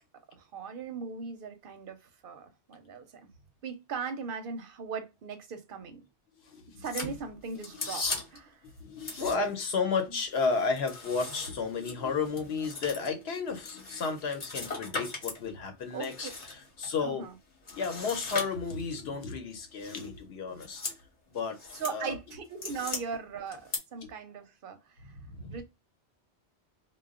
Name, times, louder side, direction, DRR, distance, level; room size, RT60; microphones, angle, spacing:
voice 1, 0.3-3.3 3.6-6.0 6.8-8.6 9.1-9.5 15.9-16.3 17.0-17.3 21.7-25.1 25.5-25.6, right 5 dB, 60° right, 0.6 m, -39 dB
voice 2, 6.4-6.8 7.7-7.9 8.6-17.3 17.7-20.8 21.3-21.6 21.9-22.2 22.7-22.8 24.0-24.1 25.0-25.6, left 4 dB, 70° left, 0.9 m, -33 dB
sound 1, 6.8-8.5 9.0-9.7 10.0-15.4 15.8-16.9 17.6-19.0 19.8-20.1 20.5-21.0 21.3-22.0 22.3-23.0 23.5-23.8, left 3 dB, 40° left, 0.9 m, -39 dB
2.2 x 2.0 x 3.5 m
omnidirectional pair, 1.2 m